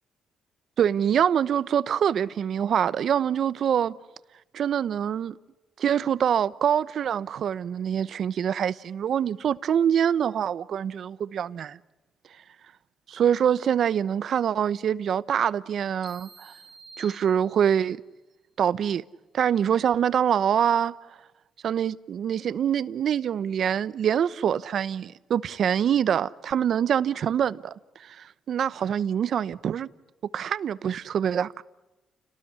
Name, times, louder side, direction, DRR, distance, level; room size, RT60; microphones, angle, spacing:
voice 1, 0.8-3.9 4.5-5.3 5.8-11.8 13.1-16.5 17.0-18.0 18.6-19.0 19.3-20.9 21.6-27.7 28.0-29.9 30.3-31.6, right 8 dB, 60° right, 1.0 m, -25 dB
sound 1, 16.0-18.0, right 3 dB, 15° right, 3.0 m, -49 dB
29.5 x 19.0 x 9.8 m
cardioid pair, 90°, 0 cm